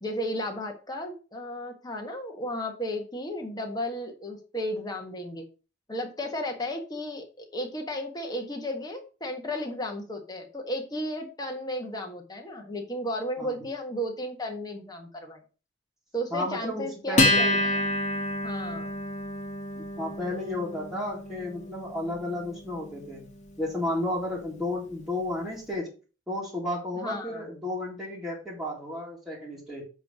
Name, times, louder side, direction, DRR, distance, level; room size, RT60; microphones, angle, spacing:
voice 1, 0.0-5.4 5.9-15.4 16.1-17.9 18.4-19.0 27.0-27.4, equal, 20° left, 2 dB, 1.5 m, -34 dB
voice 2, 16.3-17.6 19.8-23.3 23.6-25.9 26.3-29.8, left 1 dB, 5° right, -4 dB, 2.0 m, -33 dB
Acoustic guitar, 17.2-24.0, left 1 dB, 40° left, 1.8 m, -29 dB
8.1 x 3.3 x 6.3 m, 0.35 s
head